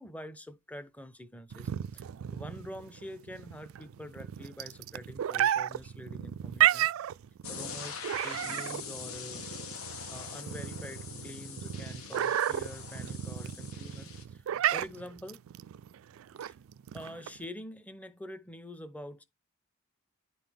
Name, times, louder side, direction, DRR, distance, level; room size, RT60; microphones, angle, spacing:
voice 1, 0.0-6.9 7.5-9.7 10.1-14.5 14.7-15.5 16.9-19.2, left 1 dB, 5° left, 0.7 m, -46 dB
sound 1, 1.5-17.5, right 11 dB, 70° right, 0.3 m, -33 dB
sound 2, 7.4-14.2, left 6 dB, 85° left, 1.3 m, -43 dB
10.5 x 4.0 x 3.5 m
head